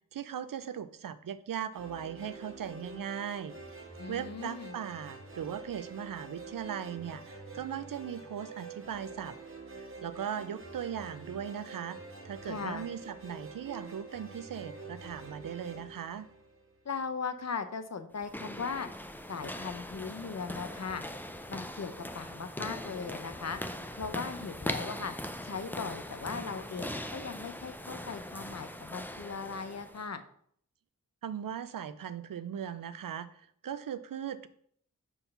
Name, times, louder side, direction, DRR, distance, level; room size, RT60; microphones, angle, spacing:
voice 1, 0.1-3.5 4.1-9.4 9.7-12.0 12.2-16.3 31.2-34.5, right 9 dB, 85° right, 13 dB, 0.5 m, -39 dB
sound 1, 1.7-17.0, right 3 dB, 40° right, 1.5 m, -47 dB
voice 2, 4.0-4.8 12.4-12.8 16.8-18.9 19.3-21.0 21.5-23.6 23.9-25.1 25.4-30.2, left 5 dB, 55° left, 9 dB, 0.7 m, -38 dB
sound 2, 18.1-30.1, left 1 dB, 5° left, 0.5 m, -41 dB
5.4 x 4.6 x 5.4 m, 0.64 s
wide cardioid pair, 60°, 32 cm